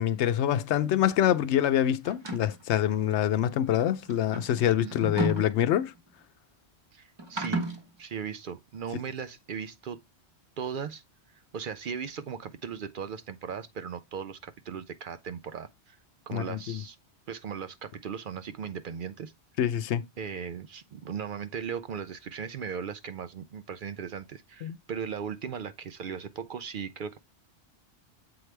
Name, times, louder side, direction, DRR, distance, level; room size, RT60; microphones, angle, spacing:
voice 1, 0.0-5.9 16.3-16.8 19.6-20.0 24.6-24.8, left 10 dB, 80° left, 0.9 m, -25 dB
sound 1, 2.0-2.6 3.7-6.1 7.2-7.8, right 1 dB, 25° right, 1.0 m, -33 dB
voice 2, 4.8-5.1 6.9-7.7 8.0-10.0 10.6-11.0 11.3-16.0 16.3-17.0 17.3-19.3 20.2-27.2, right 7 dB, 60° right, 0.6 m, -37 dB
7.8 x 4.7 x 3.3 m
omnidirectional pair, 1.1 m